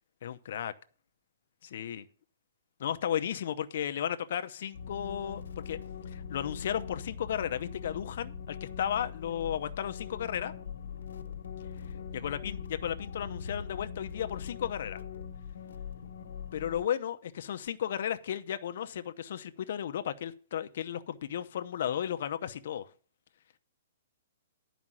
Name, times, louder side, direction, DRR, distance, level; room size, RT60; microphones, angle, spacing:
voice 1, 0.2-0.7 1.6-2.0 2.8-5.8 6.1-10.5 12.1-15.0 16.5-22.9, left 9 dB, 50° left, 0.7 m, -34 dB
sound 1, 4.7-16.9, left 7 dB, 85° left, 1.3 m, -42 dB
11.0 x 5.1 x 7.4 m
hypercardioid pair, 175°, 0 cm